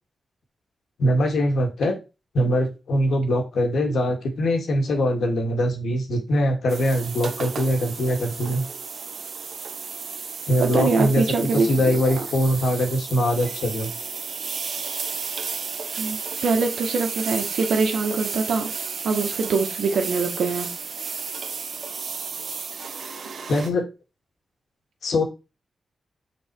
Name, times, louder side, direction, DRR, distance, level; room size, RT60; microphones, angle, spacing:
voice 1, 1.0-2.0 2.3-8.6 10.5-11.2 11.5-13.9 23.5-23.8 25.0-25.2, equal, 80° left, 3 dB, 2.1 m, -22 dB
sound 1, 6.7-23.7, right 5 dB, 70° right, 1.0 m, -33 dB
voice 2, 10.6-11.9 16.0-18.7 19.0-20.7, right 4 dB, 90° right, 4 dB, 1.7 m, -23 dB
6.5 x 4.6 x 4.7 m, 0.28 s
cardioid pair, 65°, 0 cm